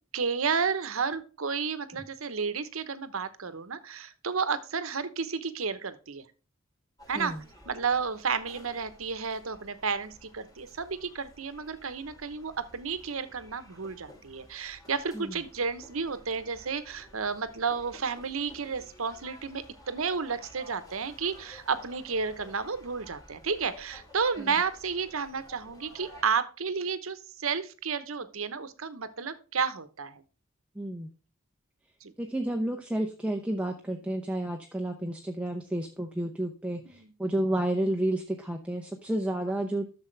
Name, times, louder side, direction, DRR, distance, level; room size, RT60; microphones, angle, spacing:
voice 1, 0.1-6.2 7.1-7.4 7.7-30.2 32.0-32.1 36.9-37.1, right 5 dB, 85° right, 13 dB, 1.0 m, -32 dB
sound 1, 7.0-26.2, left 1 dB, 20° left, 2.9 m, -53 dB
voice 2, 30.8-31.1 32.2-39.9, right 1 dB, 5° right, 3 dB, 0.7 m, -31 dB
12.0 x 7.1 x 3.3 m, 0.34 s
head